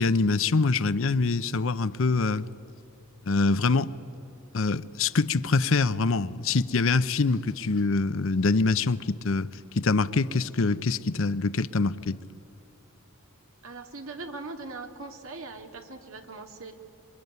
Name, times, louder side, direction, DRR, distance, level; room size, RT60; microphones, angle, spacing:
voice 1, 0.0-2.5 3.3-3.9 4.5-9.5 9.8-12.2, left 3 dB, 60° left, 15 dB, 0.7 m, -24 dB
voice 2, 13.6-16.7, right 3 dB, 65° right, 5 dB, 2.1 m, -40 dB
27.0 x 23.0 x 9.4 m, 2.8 s
head